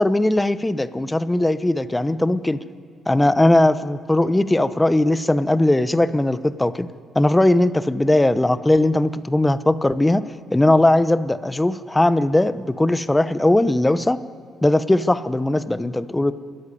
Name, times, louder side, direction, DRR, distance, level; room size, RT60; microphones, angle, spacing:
voice 1, 0.0-2.6 3.1-6.9 7.1-10.2 10.5-14.2 14.6-16.3, left 1 dB, 10° left, 13 dB, 0.9 m, -19 dB
29.0 x 13.0 x 10.0 m, 2.3 s
cardioid pair, 90°, 0 cm